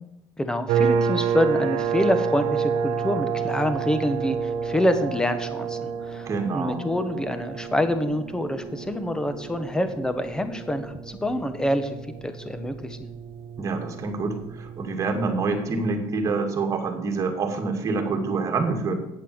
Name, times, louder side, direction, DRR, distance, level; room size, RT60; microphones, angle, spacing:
voice 1, 0.4-6.3 6.5-12.0 12.2-13.0, left 1 dB, 5° left, 9 dB, 1.1 m, -26 dB
sound 1, 0.7-16.0, right 6 dB, 65° right, 0.8 m, -29 dB
voice 2, 6.3-6.8 13.6-18.9, right 4 dB, 35° right, 3 dB, 2.3 m, -26 dB
8.9 x 8.4 x 7.9 m, 0.91 s
cardioid pair, 130°, 10 cm